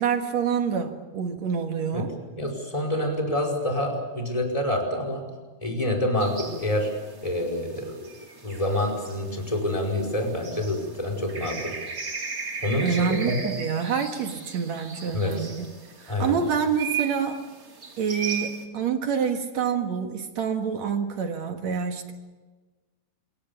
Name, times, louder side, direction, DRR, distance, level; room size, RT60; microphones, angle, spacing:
voice 1, 0.0-2.1 12.8-15.7 16.0-17.4 18.0-22.1, right 7 dB, 55° right, 5 dB, 2.3 m, -27 dB
voice 2, 2.3-5.2 5.6-6.9 7.2-8.1 8.4-11.7 12.6-13.5 15.1-15.5 16.1-16.4, left 1 dB, 10° left, 0 dB, 4.8 m, -27 dB
sound 1, 6.2-18.6, right 6 dB, 25° right, 2.5 m, -37 dB
27.5 x 23.0 x 7.1 m, 1.3 s
omnidirectional pair, 4.8 m